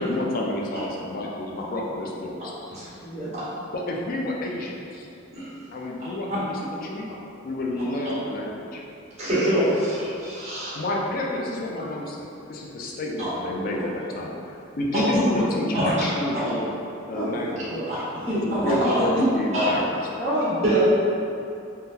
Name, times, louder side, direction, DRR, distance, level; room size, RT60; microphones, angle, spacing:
voice 1, 0.0-2.5 3.7-5.1 5.7-7.1 7.4-8.8 10.8-16.7 17.1-17.8 18.4-19.9, left 1 dB, 45° left, -1 dB, 0.4 m, -29 dB
voice 2, 3.0-3.3 17.1-18.7 20.2-20.8, equal, 25° left, -11 dB, 0.9 m, -29 dB
voice 3, 9.2-10.8 13.2-13.3 14.9-15.2 15.7-15.9 17.9-18.0 18.6-19.0 19.5-19.8 20.6-20.8, right 1 dB, 35° right, -11 dB, 1.4 m, -24 dB
3.7 x 2.2 x 2.7 m, 2.6 s
head